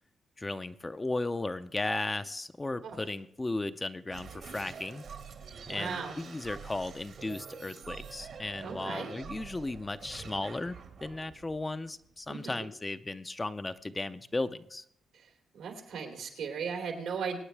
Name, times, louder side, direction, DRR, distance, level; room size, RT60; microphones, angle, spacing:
voice 1, 0.4-5.0 5.7-14.8, left 2 dB, 20° left, 11 dB, 0.5 m, -35 dB
sound 1, 4.1-12.3, right 5 dB, 65° right, 1.7 m, -46 dB
voice 2, 5.7-6.1 8.6-9.1 12.3-12.6 15.1-17.4, right 6 dB, 90° right, 2 dB, 3.1 m, -37 dB
24.0 x 9.2 x 3.4 m, 0.71 s
cardioid pair, 95°, 0 cm